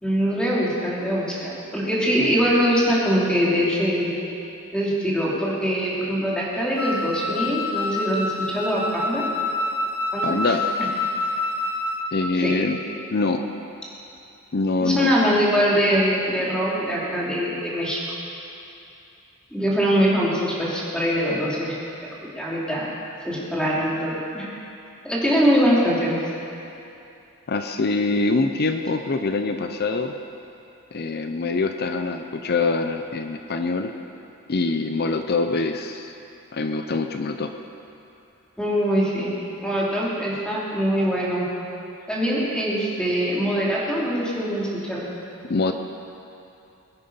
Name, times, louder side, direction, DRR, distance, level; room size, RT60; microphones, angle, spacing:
voice 1, 0.0-4.1 4.7-9.2 10.1-10.3 12.3-12.5 14.8-18.0 19.5-21.8 22.0-22.9 23.2-24.5 25.0-26.2 38.6-39.3 39.6-41.4 42.1-45.1, equal, 5° left, -6 dB, 2.8 m, -23 dB
Wind instrument woodwind instrument, 6.8-12.1, left 2 dB, 80° left, 1.3 m, -27 dB
voice 2, 10.2-10.6 12.1-12.8 13.1-13.5 14.5-15.1 27.5-30.1 30.9-33.9 34.5-36.1 36.5-37.5 45.5-45.7, left 3 dB, 45° left, 6 dB, 0.6 m, -24 dB
21.5 x 9.8 x 5.6 m, 2.8 s
head